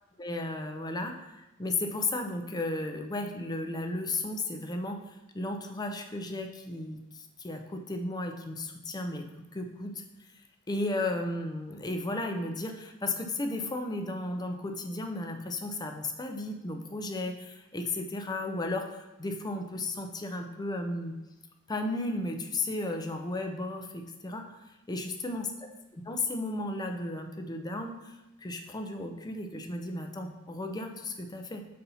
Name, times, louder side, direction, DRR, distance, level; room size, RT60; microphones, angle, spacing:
voice 1, 0.2-5.0 5.3-9.3 9.5-10.0 10.7-21.1 21.7-24.6 24.9-25.5 26.1-28.1 28.4-31.7, left 2 dB, 20° left, 5 dB, 0.5 m, -34 dB
4.2 x 4.1 x 5.4 m, 0.95 s
head